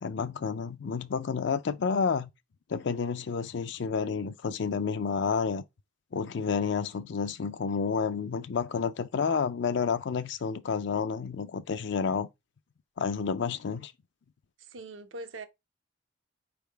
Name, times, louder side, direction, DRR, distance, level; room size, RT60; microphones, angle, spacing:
voice 1, 0.0-2.3 2.7-5.6 6.1-12.3 13.0-13.9, left 5 dB, 65° left, 0.4 m, -30 dB
voice 2, 14.6-15.5, right 2 dB, 80° right, 0.8 m, -42 dB
4.5 x 3.5 x 3.3 m
head